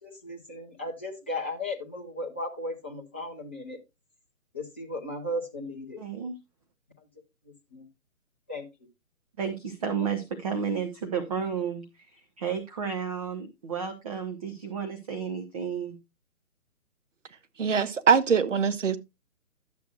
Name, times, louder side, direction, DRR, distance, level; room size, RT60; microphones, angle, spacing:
voice 1, 0.0-3.8 4.5-6.0 7.0-7.1 7.7-7.9 8.5-8.7, left 1 dB, 10° left, 0.6 m, -36 dB
voice 2, 6.0-6.3 9.4-16.0, right 7 dB, 25° right, 0.9 m, -32 dB
voice 3, 17.6-19.0, right 6 dB, 60° right, 1.2 m, -22 dB
12.0 x 8.1 x 2.4 m
figure-of-eight pair, 140°, 42 cm